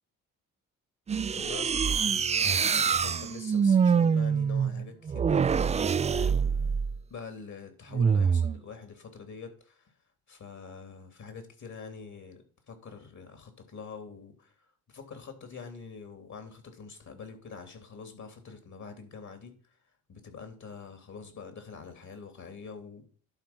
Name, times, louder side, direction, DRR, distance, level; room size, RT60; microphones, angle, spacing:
sound 1, 1.1-7.0 7.9-8.6, right 6 dB, 20° right, 0.3 m, -25 dB
voice 1, 1.3-6.4 7.1-9.9 10.3-14.5 14.9-19.5 20.1-23.1, left 5 dB, 55° left, 3.2 m, -45 dB
11.5 x 4.3 x 5.9 m
supercardioid pair, 55°, 35 cm